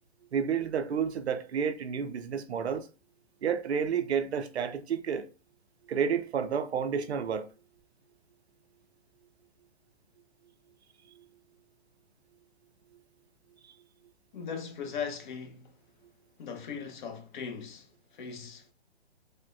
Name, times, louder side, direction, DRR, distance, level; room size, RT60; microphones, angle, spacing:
voice 1, 0.3-2.9 3.4-5.3 5.9-7.5, right 7 dB, 85° right, 0.5 m, -30 dB
voice 2, 14.3-15.8 16.4-18.7, left 6 dB, 50° left, 0.7 m, -39 dB
3.4 x 2.1 x 2.6 m
hypercardioid pair, 125°, 32 cm